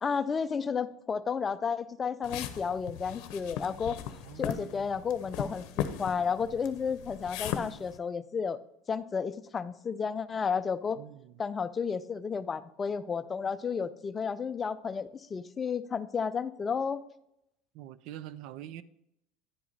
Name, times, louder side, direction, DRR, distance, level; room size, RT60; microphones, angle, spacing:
voice 1, 0.0-4.0 4.4-8.6 8.9-11.0 11.4-17.0, left 6 dB, 20° left, 13 dB, 0.4 m, -32 dB
sound 1, 2.2-8.0, left 9 dB, 65° left, 0.7 m, -38 dB
voice 2, 4.1-4.8 11.0-11.3 17.7-18.8, right 12 dB, 60° right, 17 dB, 0.4 m, -45 dB
10.0 x 4.9 x 4.1 m, 0.79 s
supercardioid pair, 130°, 0 cm